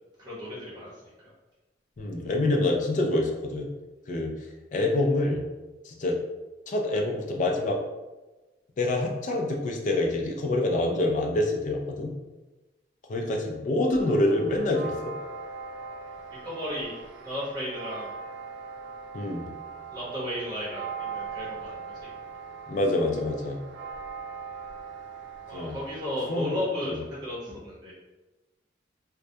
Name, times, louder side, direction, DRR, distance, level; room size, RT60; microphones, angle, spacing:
voice 1, 0.2-0.9 16.4-16.9 17.2-18.1 19.9-22.1 25.5-27.9, left 1 dB, 20° right, -9 dB, 0.8 m, -34 dB
voice 2, 2.0-3.7 4.1-4.3 4.7-5.4 5.8-6.2 6.7-7.8 8.8-12.1 13.1-15.2 19.1-19.5 22.7-23.6 25.5-25.8 26.3-27.0, left 2 dB, 45° left, 1 dB, 0.3 m, -26 dB
sound 1, 13.9-26.6, right 5 dB, 70° right, 0.4 m, -40 dB
2.2 x 2.1 x 2.6 m, 1.1 s
head